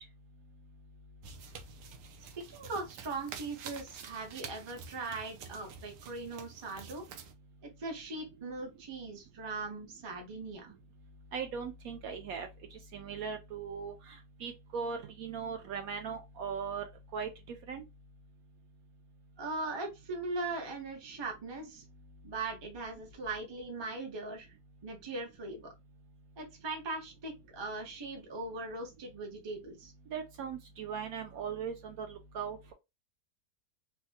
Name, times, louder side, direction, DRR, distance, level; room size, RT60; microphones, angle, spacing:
sound 1, 1.2-7.3, right 6 dB, 85° right, 1.2 m, -48 dB
voice 1, 2.5-7.0 7.8-10.7 19.4-21.8 22.2-24.5 24.8-25.7 26.4-29.9, right 3 dB, 30° right, 0.5 m, -40 dB
voice 2, 11.3-16.8 17.1-17.8 30.1-32.7, right 6 dB, 70° right, 0.9 m, -39 dB
3.6 x 2.1 x 2.7 m
omnidirectional pair, 1.8 m